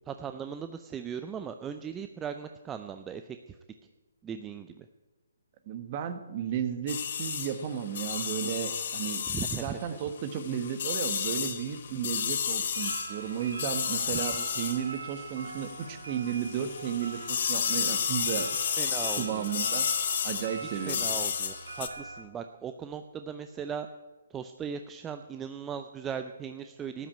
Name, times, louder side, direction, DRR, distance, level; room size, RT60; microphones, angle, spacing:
voice 1, 0.1-3.4 4.2-4.8 9.3-9.8 14.1-14.5 18.8-19.5 20.7-23.9 24.3-27.1, right 7 dB, 15° right, 8 dB, 0.5 m, -38 dB
voice 2, 5.7-9.2 9.6-18.5 19.2-19.9 20.2-21.0, right 8 dB, 35° right, 9 dB, 1.4 m, -33 dB
sound 1, 6.9-15.9 16.2-21.9, left 7 dB, 55° left, 1.3 m, -32 dB
sound 2, 11.6-22.2, right 4 dB, 80° right, 2.0 m, -43 dB
13.0 x 9.0 x 8.7 m, 1.2 s
figure-of-eight pair, 140°, 0 cm